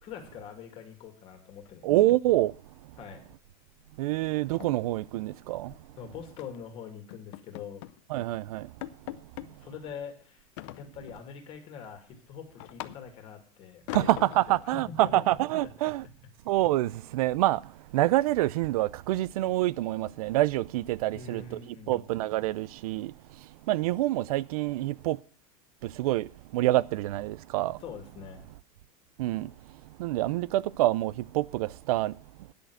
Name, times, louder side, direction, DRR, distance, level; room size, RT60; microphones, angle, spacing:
voice 1, 0.0-1.9 3.0-3.2 4.7-4.8 6.0-7.9 9.5-10.4 10.8-14.1 14.5-15.2 21.1-22.0 27.8-28.4, left 7 dB, 30° left, 2.2 m, -43 dB
sound 1, 1.6-2.5 2.7-3.0 3.3-3.5 3.8-3.9 4.3-5.9 6.4-6.6 7.1-8.0 8.4-8.5 8.8-9.5 10.6-11.3 11.7-13.3 13.9-14.6, left 16 dB, 50° left, 0.7 m, -43 dB
voice 2, 1.8-2.5 4.0-5.7 8.1-8.7 13.9-16.0 16.5-17.6 17.9-21.6 21.9-23.1 23.7-25.2 25.8-26.3 26.5-27.8 29.2-29.5 30.0-32.1, right 16 dB, 85° right, 0.5 m, -26 dB
10.5 x 6.5 x 7.9 m
supercardioid pair, 180°, 18 cm